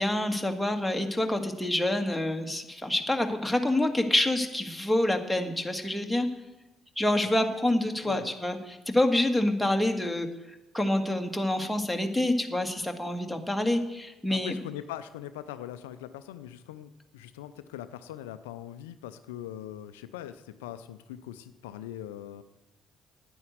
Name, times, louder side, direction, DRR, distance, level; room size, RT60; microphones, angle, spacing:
voice 1, 0.0-6.3 7.0-10.3 10.7-14.6, left 1 dB, 5° left, 3 dB, 1.7 m, -27 dB
voice 2, 14.3-22.4, left 12 dB, 85° left, 12 dB, 0.4 m, -41 dB
9.6 x 9.4 x 7.9 m, 0.99 s
hypercardioid pair, 50°, 0 cm